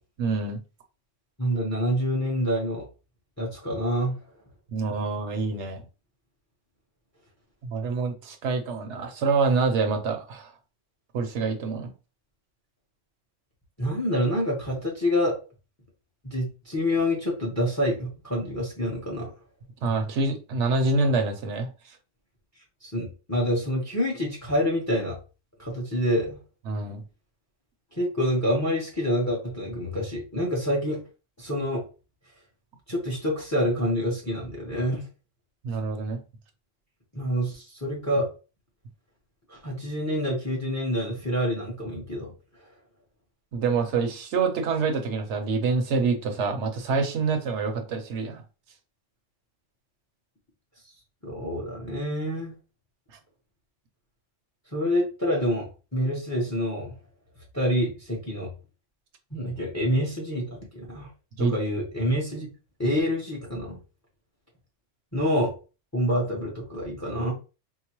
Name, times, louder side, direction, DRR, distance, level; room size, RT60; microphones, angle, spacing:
voice 1, 0.2-0.6 4.7-5.8 7.6-10.5 11.1-11.9 19.8-22.0 26.7-27.0 35.6-36.2 43.5-48.4 61.4-61.5, right 4 dB, 70° right, 1.0 m, -26 dB
voice 2, 1.4-2.9 3.4-4.2 13.8-15.4 16.2-19.3 22.8-25.2 25.6-26.4 27.9-31.0 31.4-31.9 32.9-35.0 37.1-38.3 39.5-42.3 51.2-52.6 54.7-56.9 57.5-58.5 59.3-61.1 61.4-62.5 62.8-63.8 65.1-65.5 65.9-67.3, equal, 15° left, 0.9 m, -27 dB
4.6 x 2.1 x 2.9 m
omnidirectional pair, 1.3 m